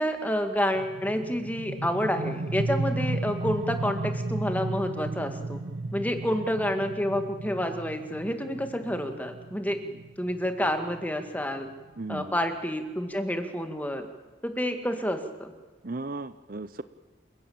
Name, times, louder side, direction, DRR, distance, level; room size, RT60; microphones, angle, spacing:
voice 1, 0.0-5.6 5.9-9.8 10.2-11.7 12.1-14.1 14.4-15.5, equal, 10° left, 6 dB, 2.1 m, -29 dB
sound 1, 0.7-12.2, right 2 dB, 90° right, 1.0 m, -34 dB
voice 2, 12.0-12.3 15.8-16.8, right 2 dB, 50° right, 13 dB, 0.7 m, -35 dB
28.5 x 16.5 x 8.8 m, 1.3 s
head